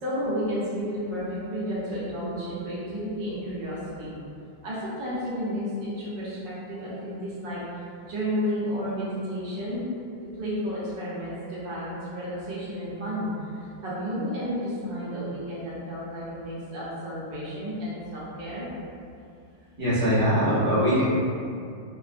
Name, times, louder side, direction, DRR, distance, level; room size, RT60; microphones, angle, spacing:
voice 1, 0.0-4.2 4.6-9.9 10.4-18.7, equal, 70° right, -9 dB, 1.5 m, -32 dB
voice 2, 19.8-21.0, equal, 15° right, -13 dB, 0.7 m, -22 dB
4.6 x 2.1 x 2.4 m, 2.4 s
omnidirectional pair, 2.1 m